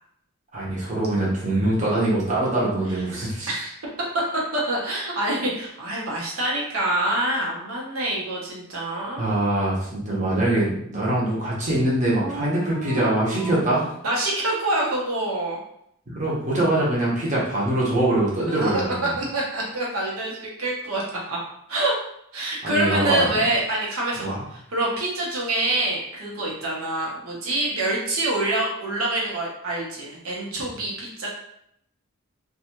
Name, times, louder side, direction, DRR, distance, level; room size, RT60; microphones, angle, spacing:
voice 1, 0.5-3.5 9.2-13.9 16.1-19.1 22.6-23.3 24.2-24.4, right 1 dB, 35° right, -6 dB, 0.8 m, -23 dB
voice 2, 4.5-9.3 12.2-13.6 14.0-15.6 18.5-18.8 19.2-21.4 21.7-21.9 22.3-31.3, right 1 dB, 90° right, -3 dB, 0.9 m, -26 dB
2.6 x 2.3 x 2.9 m, 0.73 s
head